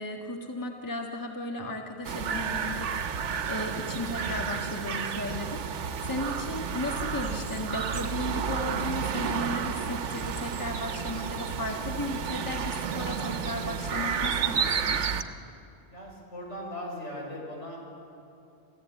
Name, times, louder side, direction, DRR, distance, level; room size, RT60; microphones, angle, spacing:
voice 1, 0.0-2.9 3.5-15.1, left 1 dB, 15° left, 2 dB, 1.4 m, -35 dB
sound 1, 2.0-15.2, right 6 dB, 75° right, 1.2 m, -31 dB
voice 2, 6.8-7.2 15.9-17.9, left 1 dB, 70° left, -1 dB, 5.6 m, -39 dB
27.5 x 14.5 x 8.9 m, 2.8 s
omnidirectional pair, 1.2 m